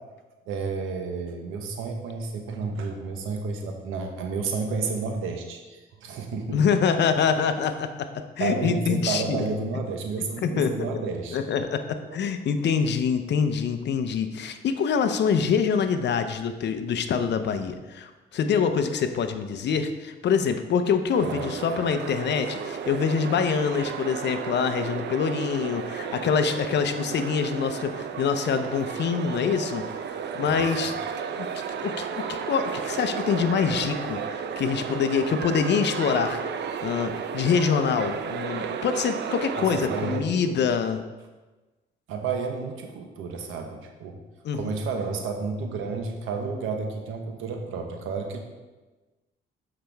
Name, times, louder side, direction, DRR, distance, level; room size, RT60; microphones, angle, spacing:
voice 1, 0.5-6.6 8.4-11.4 12.1-12.2 21.2-21.8 30.1-30.7 31.1-31.4 34.4-34.6 39.5-40.6 42.1-44.2 44.5-48.4, right 4 dB, 90° right, 3 dB, 1.0 m, -31 dB
voice 2, 6.5-9.4 10.4-10.9 11.3-11.8 12.1-30.9 31.4-36.4 36.8-41.0 44.4-44.7, left 6 dB, 60° left, 8 dB, 0.7 m, -25 dB
sound 1, 21.1-40.2, right 7 dB, 60° right, 0.6 m, -33 dB
7.4 x 5.8 x 3.4 m, 1.2 s
cardioid pair, 90°, 20 cm